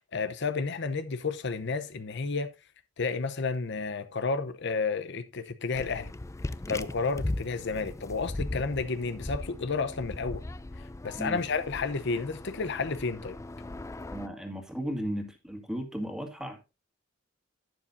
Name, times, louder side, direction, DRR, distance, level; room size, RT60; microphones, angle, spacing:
voice 1, 0.0-2.5 3.0-6.1 6.7-10.4 10.8-13.4, left 4 dB, 60° left, 0.8 m, -31 dB
sound 1, 5.7-14.3, left 2 dB, 15° left, 0.4 m, -38 dB
voice 2, 14.1-16.7, equal, 5° right, 2.1 m, -35 dB
11.5 x 10.0 x 2.6 m
head